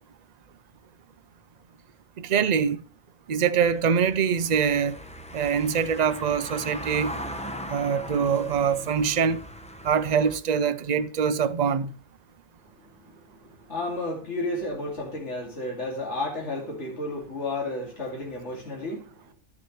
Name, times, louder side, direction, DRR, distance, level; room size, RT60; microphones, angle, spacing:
voice 1, 2.2-2.8 3.3-5.0 5.3-7.1 7.7-9.4 9.8-12.0, right 7 dB, 45° right, 0.6 m, -24 dB
Car passing by / Engine, 3.6-10.4, equal, 5° left, 0.8 m, -39 dB
voice 2, 12.9-19.3, left 2 dB, 70° left, 2.8 m, -32 dB
12.5 x 7.2 x 3.1 m
omnidirectional pair, 1.2 m